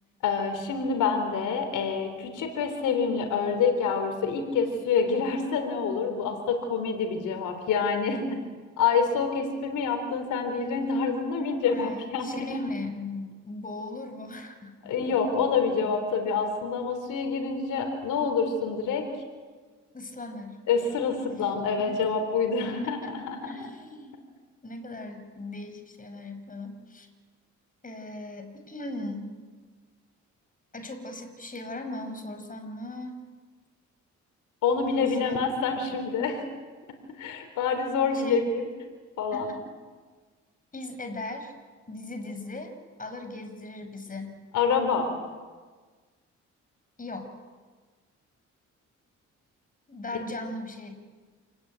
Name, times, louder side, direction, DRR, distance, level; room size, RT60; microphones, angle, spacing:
voice 1, 0.2-8.4 8.8-12.6 14.8-19.0 20.7-23.6 34.6-36.4 37.2-38.7 39.2-39.5 44.5-45.1, left 5 dB, 85° left, 6 dB, 3.9 m, -27 dB
voice 2, 11.7-15.2 19.9-20.6 21.3-21.5 21.9-22.0 22.8-23.1 23.4-24.2 24.6-27.1 27.8-29.3 30.7-33.1 35.0-35.5 38.1-38.4 39.3-39.6 40.7-41.5 41.9-42.7 43.0-44.4 47.0-47.3 49.9-51.0, left 2 dB, 25° left, 6 dB, 5.3 m, -38 dB
28.0 x 19.0 x 9.1 m, 1.4 s
cardioid pair, 90°, 30 cm